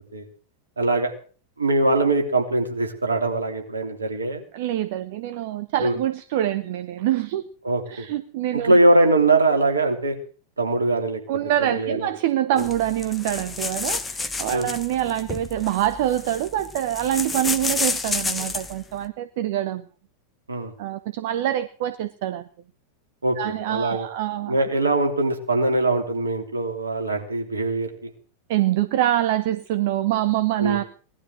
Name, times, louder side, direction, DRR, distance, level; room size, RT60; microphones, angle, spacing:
voice 1, 0.8-1.1 1.6-4.4 5.8-6.0 7.6-8.1 8.5-10.1 10.6-11.2 11.6-12.1 12.5-12.7 14.5-14.7 20.5-20.7 23.2-24.1 24.5-28.1 30.6-30.8, right 2 dB, 75° right, 4 dB, 3.1 m, -22 dB
voice 2, 4.5-7.4 7.9-8.7 11.3-19.8 20.8-22.4 23.4-24.6 28.5-30.8, right 13 dB, 50° right, 11 dB, 0.9 m, -25 dB
sound 1, 12.6-18.8, left 4 dB, 15° left, 1.4 m, -30 dB
18.5 x 12.5 x 6.2 m, 0.41 s
figure-of-eight pair, 90°, 0 cm